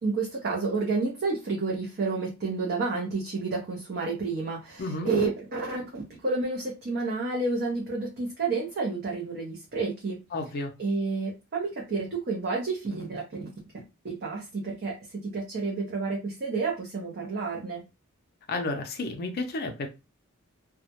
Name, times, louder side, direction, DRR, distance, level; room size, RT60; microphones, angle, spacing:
voice 1, 0.0-10.2 10.8-13.5 14.0-17.9, right 3 dB, 50° right, 0.5 m, -30 dB
voice 2, 4.8-5.1 10.3-10.7 18.5-19.9, left 2 dB, 45° left, 0.4 m, -31 dB
2.2 x 2.0 x 2.8 m
head